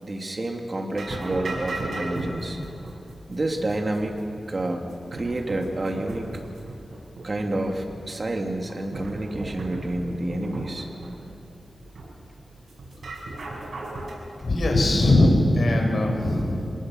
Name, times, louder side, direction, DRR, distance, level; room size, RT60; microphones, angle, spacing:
voice 1, 0.0-2.6 3.3-6.3 7.2-10.9, right 1 dB, 45° right, 2 dB, 2.6 m, -29 dB
sound 1, 0.9-14.1, right 2 dB, 80° right, 6.0 m, -37 dB
voice 2, 14.4-16.7, left 1 dB, 65° left, 1 dB, 5.0 m, -20 dB
26.5 x 18.5 x 6.4 m, 2.5 s
wide cardioid pair, 65°, 0 cm